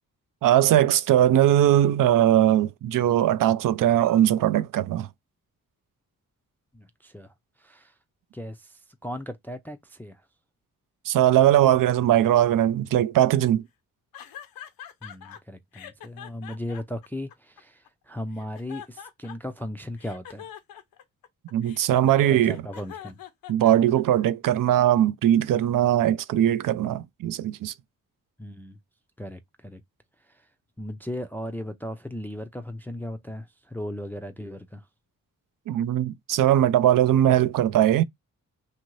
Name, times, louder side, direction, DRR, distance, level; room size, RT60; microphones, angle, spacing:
voice 1, 0.4-5.1 11.1-13.6 21.5-22.6 23.5-27.7 35.7-38.0, right 12 dB, 65° right, 0.5 m, -20 dB
voice 2, 6.7-7.3 7.6-7.9 8.3-10.2 15.0-20.5 22.3-23.2 28.4-28.8 29.2-29.8 30.8-34.8, left 1 dB, 5° left, 0.4 m, -37 dB
sound 1, 14.1-15.4 15.7-17.9 18.3-19.6 20.0-24.2, left 9 dB, 85° left, 0.6 m, -44 dB
2.8 x 2.5 x 3.0 m
cardioid pair, 60°, 35 cm